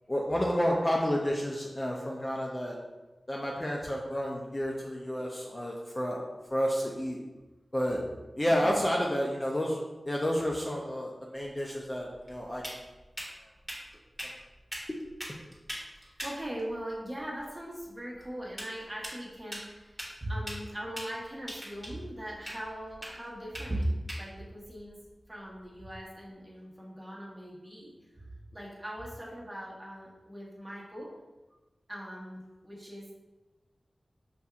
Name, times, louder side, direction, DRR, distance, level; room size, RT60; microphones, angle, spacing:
voice 1, 0.1-2.8 3.3-6.2 6.5-7.2 7.7-8.0 8.4-9.8 10.0-12.6 14.9-15.0, equal, 25° left, -2 dB, 0.5 m, -30 dB
sound 1, 11.5-26.1, equal, ahead, 1.4 m, -45 dB
voice 2, 16.0-25.0 25.3-31.1 31.9-33.1, right 1 dB, 15° right, -5 dB, 1.0 m, -39 dB
5.6 x 2.6 x 2.4 m, 1.1 s
wide cardioid pair, 70°, 0 cm